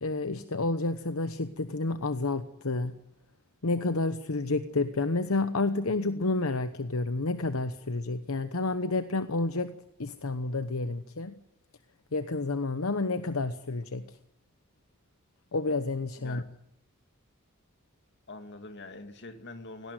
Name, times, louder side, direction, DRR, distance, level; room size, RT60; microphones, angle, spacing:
voice 1, 0.0-2.9 3.6-9.7 10.0-11.4 12.1-14.1 15.5-16.4, left 3 dB, 75° left, 10 dB, 1.0 m, -30 dB
voice 2, 18.3-19.9, left 3 dB, 55° left, 7 dB, 2.4 m, -44 dB
18.0 x 17.5 x 9.3 m, 0.75 s
head